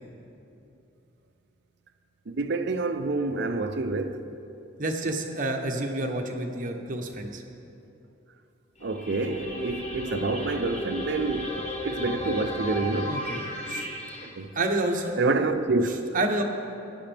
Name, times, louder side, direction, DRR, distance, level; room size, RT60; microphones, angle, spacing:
voice 1, 2.3-4.2 8.8-13.1 14.2-14.5 15.2-16.0, right 3 dB, 55° right, 0.6 m, -27 dB
voice 2, 4.8-7.4 13.1-13.4 13.7-13.9 14.5-15.2 16.1-16.4, right 2 dB, 40° right, 1.0 m, -29 dB
sound 1, 8.8-14.3, left 1 dB, 35° left, 1.1 m, -35 dB
15.0 x 10.5 x 3.4 m
head